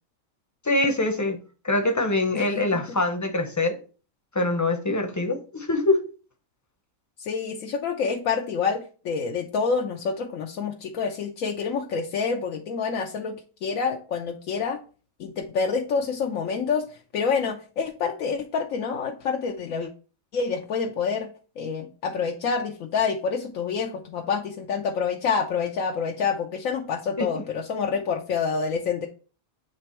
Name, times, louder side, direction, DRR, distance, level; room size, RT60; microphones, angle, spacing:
voice 1, 0.6-1.4 1.6-3.8 4.3-6.0 27.2-27.4, left 2 dB, 15° left, 6 dB, 0.6 m, -24 dB
voice 2, 2.3-3.0 7.2-14.8 15.2-16.8 17.1-19.9 20.3-21.3 21.6-29.1, left 5 dB, 80° left, 1 dB, 1.1 m, -27 dB
7.9 x 3.4 x 4.4 m, 0.37 s
omnidirectional pair, 1.4 m